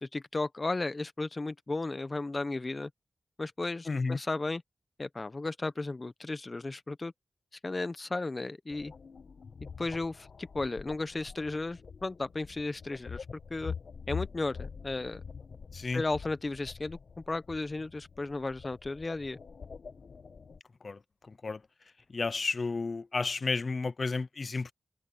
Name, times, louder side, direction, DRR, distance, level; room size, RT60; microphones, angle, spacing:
voice 1, 0.0-2.9 3.4-4.6 5.0-7.1 7.6-8.9 9.8-13.2 13.5-13.7 14.1-15.2 15.9-17.0 17.3-19.4, left 2 dB, 40° left, 1.2 m, -34 dB
voice 2, 3.9-4.2 15.7-16.0 20.8-21.0 21.3-21.6 22.1-24.7, left 3 dB, 55° left, 0.6 m, -32 dB
sound 1, 8.7-20.6, left 6 dB, 75° left, 1.3 m, -45 dB
cardioid pair, 50°, 0 cm